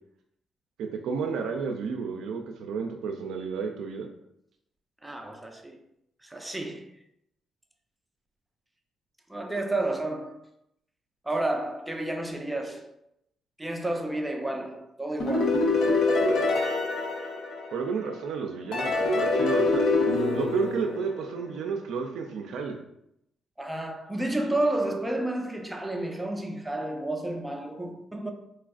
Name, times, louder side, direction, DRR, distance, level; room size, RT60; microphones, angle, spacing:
voice 1, 0.8-4.1 17.7-19.9 20.3-22.8, right 5 dB, 80° right, 0.3 m, -31 dB
voice 2, 5.0-5.8 6.2-6.9 9.3-10.4 11.2-13.0 13.6-15.7 23.6-28.3, right 1 dB, 5° right, 0.5 m, -31 dB
sound 1, 15.2-18.1 18.7-21.6, left 3 dB, 75° left, 0.6 m, -25 dB
4.2 x 2.4 x 2.4 m
cardioid pair, 90°, 0 cm